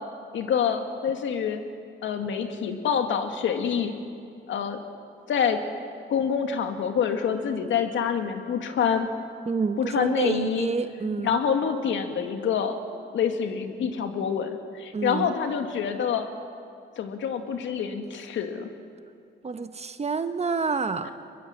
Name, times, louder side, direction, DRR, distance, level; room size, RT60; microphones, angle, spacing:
voice 1, 0.3-1.6 2.0-3.9 4.5-4.8 5.3-5.6 6.1-9.1 9.8-10.7 11.2-12.8 13.1-16.3 17.0-18.7, left 7 dB, 70° left, 6 dB, 2.2 m, -26 dB
voice 2, 9.5-11.4 14.9-15.3 19.4-21.1, right 4 dB, 35° right, 10 dB, 1.2 m, -28 dB
22.5 x 22.0 x 7.6 m, 2.4 s
cardioid pair, 90°, 20 cm